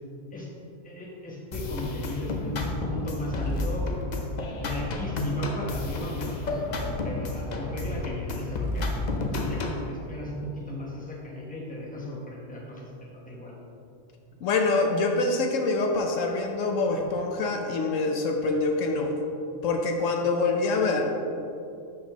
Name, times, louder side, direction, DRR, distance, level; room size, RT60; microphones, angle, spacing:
voice 1, 0.8-3.9 4.6-12.8 13.3-13.5, left 1 dB, 5° left, -4 dB, 1.0 m, -36 dB
sound 1, 1.5-9.9, left 2 dB, 50° left, 0.6 m, -31 dB
voice 2, 14.4-19.1 19.6-21.0, left 3 dB, 75° left, 3 dB, 1.0 m, -25 dB
11.0 x 4.3 x 3.0 m, 2.6 s
omnidirectional pair, 1.4 m